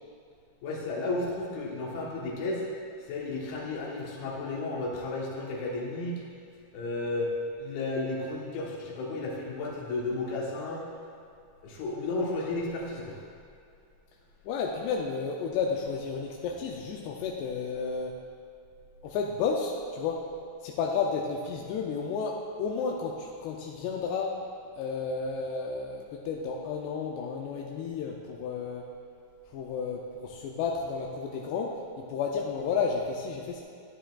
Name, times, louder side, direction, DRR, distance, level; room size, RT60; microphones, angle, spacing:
voice 1, 0.6-2.6 3.1-6.2 6.7-7.3 7.6-10.9 11.6-13.2, left 2 dB, 70° left, -3 dB, 3.0 m, -33 dB
voice 2, 14.5-18.2 19.0-20.2 20.6-24.4 24.8-28.8 29.5-33.6, left 5 dB, 85° left, 0 dB, 2.7 m, -32 dB
12.0 x 10.0 x 2.4 m, 2.4 s
omnidirectional pair, 4.7 m